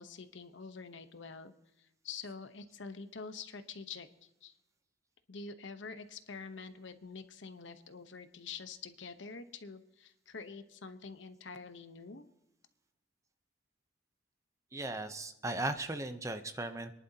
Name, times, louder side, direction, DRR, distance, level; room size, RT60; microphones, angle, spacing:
voice 1, 0.0-4.1 4.4-4.5 5.3-12.2, left 5 dB, 80° left, 10 dB, 0.9 m, -46 dB
voice 2, 14.7-16.9, right 2 dB, 15° right, 8 dB, 0.7 m, -37 dB
25.0 x 11.0 x 2.8 m, 0.88 s
head